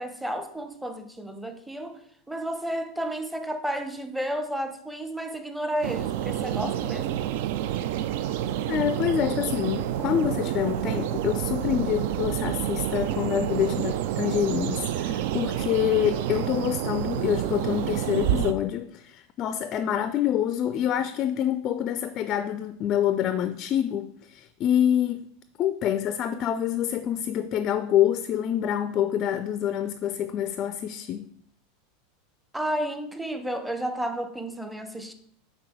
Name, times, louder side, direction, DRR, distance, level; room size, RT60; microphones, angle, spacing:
voice 1, 0.0-2.0 2.3-7.2 32.5-35.1, right 1 dB, 5° right, 0.7 m, -32 dB
sound 1, 5.8-18.5, right 11 dB, 55° right, 0.3 m, -28 dB
voice 2, 8.7-25.2 25.6-31.3, left 10 dB, 40° left, 0.4 m, -26 dB
6.0 x 4.4 x 4.5 m
figure-of-eight pair, 85°, 0 cm